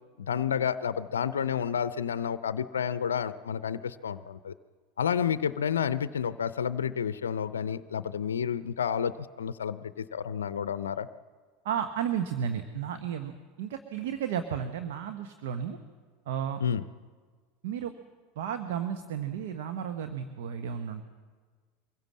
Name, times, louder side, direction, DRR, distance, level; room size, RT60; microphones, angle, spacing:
voice 1, 0.3-4.5 5.0-11.1 16.6-16.8, left 8 dB, 85° left, 14 dB, 0.5 m, -30 dB
voice 2, 11.6-15.8 16.3-16.6 17.6-17.9 18.4-21.1, right 8 dB, 70° right, 8 dB, 1.1 m, -33 dB
23.0 x 16.0 x 7.5 m, 1.5 s
hypercardioid pair, 85°, 0 cm